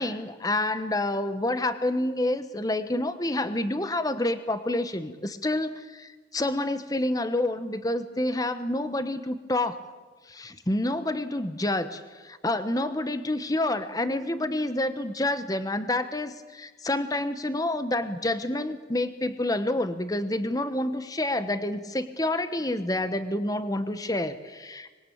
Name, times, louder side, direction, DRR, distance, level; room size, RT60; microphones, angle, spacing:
voice 1, 0.0-9.8 10.3-24.9, left 1 dB, 20° left, 11 dB, 1.1 m, -28 dB
25.5 x 21.0 x 8.7 m, 1.3 s
head